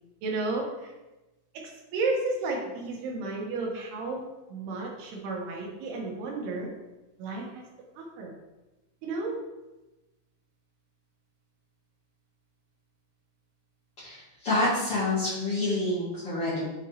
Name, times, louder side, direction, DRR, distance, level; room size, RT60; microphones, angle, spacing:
voice 1, 0.2-0.9 1.9-6.7 7.2-7.6 8.0-8.3 9.0-9.4, right 3 dB, 70° right, -1 dB, 2.8 m, -32 dB
voice 2, 14.0-16.7, left 2 dB, 55° left, -11 dB, 1.6 m, -28 dB
8.5 x 3.5 x 4.2 m, 1.1 s
omnidirectional pair, 5.3 m